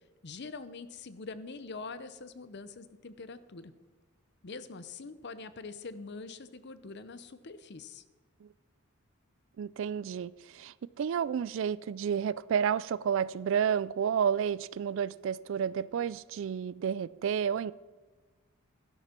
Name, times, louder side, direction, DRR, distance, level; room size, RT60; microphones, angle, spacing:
voice 1, 0.2-3.7 4.4-8.0, left 4 dB, 50° left, 0.7 m, -44 dB
voice 2, 9.6-17.7, right 7 dB, 60° right, 0.3 m, -31 dB
13.0 x 11.0 x 4.4 m
head